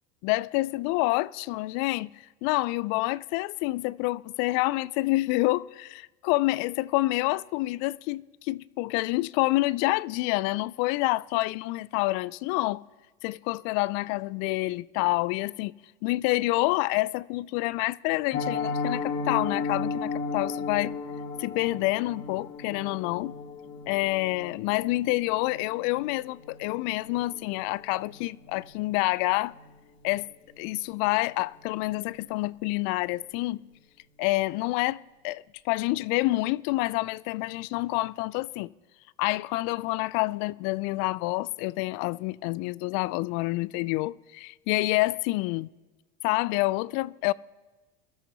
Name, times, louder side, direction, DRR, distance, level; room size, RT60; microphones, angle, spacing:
voice 1, 0.2-2.1 2.4-12.8 13.2-15.7 16.0-20.9 21.4-23.3 23.9-29.5 30.0-30.3 30.6-33.6 34.2-38.7 39.2-45.7 46.2-47.3, left 20 dB, 55° left, 0.5 m, -28 dB
Piano, 18.3-29.2 29.5-29.7 30.0-30.2 30.5-30.8 31.1-31.2, left 4 dB, 35° left, 1.7 m, -35 dB
24.0 x 13.0 x 2.9 m
hypercardioid pair, 95°, 32 cm